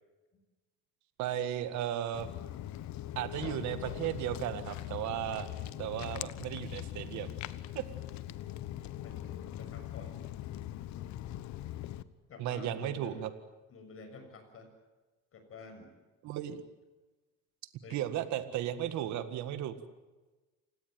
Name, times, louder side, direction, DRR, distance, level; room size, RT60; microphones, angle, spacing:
voice 1, 1.2-2.3 3.2-5.5 5.8-7.3 7.8-7.9 12.4-13.3 16.2-16.6 17.9-19.7, right 11 dB, 70° right, 11 dB, 1.9 m, -35 dB
Walk footsteps, 2.1-12.0, left 13 dB, 65° left, 1.2 m, -41 dB
voice 2, 9.0-10.2 12.3-13.3 13.7-14.7 15.3-15.9 17.8-18.0, left 3 dB, 45° left, 6 dB, 6.8 m, -49 dB
29.0 x 17.5 x 9.2 m, 1.2 s
cardioid pair, 120°, 30 cm